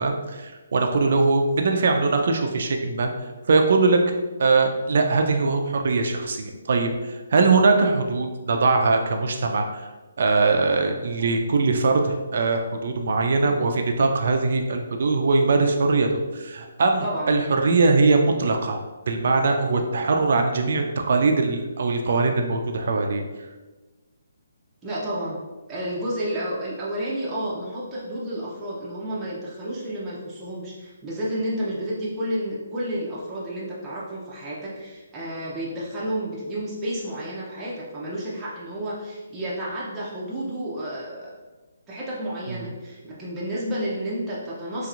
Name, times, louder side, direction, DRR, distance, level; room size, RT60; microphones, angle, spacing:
voice 1, 0.0-3.1 3.5-4.0 4.4-9.8 10.2-18.8 19.1-23.2, right 3 dB, 60° right, 4 dB, 0.4 m, -21 dB
voice 2, 17.0-17.3 24.8-25.4 25.7-41.3 41.9-44.9, right 1 dB, 10° right, -8 dB, 0.6 m, -31 dB
3.1 x 2.9 x 2.4 m, 1.2 s
hypercardioid pair, 155°, 0 cm